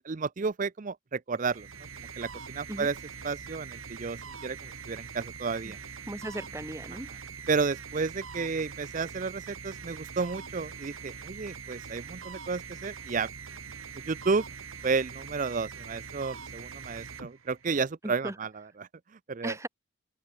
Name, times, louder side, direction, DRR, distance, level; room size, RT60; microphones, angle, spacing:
voice 1, 0.0-1.7 2.2-2.9 3.2-5.8 7.1-7.2 7.5-13.3 14.1-14.4 14.8-18.9 19.3-19.6, right 4 dB, 35° right, 0.5 m, -32 dB
sound 1, 1.3-17.9, right 6 dB, 75° right, 2.2 m, -43 dB
voice 2, 6.1-7.1 18.0-18.3 19.4-19.7, right 1 dB, 15° right, 1.2 m, -37 dB
open air
head